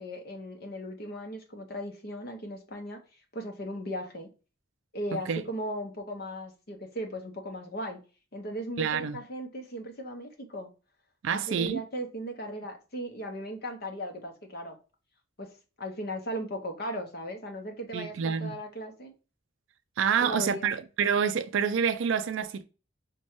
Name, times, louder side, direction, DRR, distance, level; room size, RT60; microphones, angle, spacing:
voice 1, 0.0-3.0 3.3-4.3 4.9-8.0 8.3-10.7 11.3-14.8 15.4-15.5 15.8-19.1 20.2-20.7, equal, 50° left, 0.8 m, -37 dB
voice 2, 8.8-9.2 11.2-11.8 17.9-18.6 20.0-22.6, right 7 dB, 70° right, 0.4 m, -27 dB
5.2 x 2.2 x 2.9 m
head